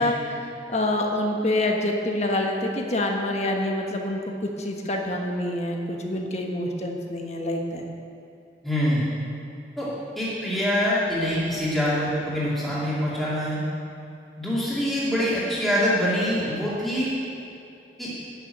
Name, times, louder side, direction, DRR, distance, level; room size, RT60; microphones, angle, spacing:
voice 1, 0.0-7.9, left 1 dB, 35° left, 1 dB, 1.3 m, -26 dB
voice 2, 8.6-9.0 9.8-9.9 10.2-13.6 14.4-17.1 18.0-18.1, equal, ahead, -9 dB, 2.5 m, -24 dB
11.5 x 6.8 x 8.9 m, 2.7 s
head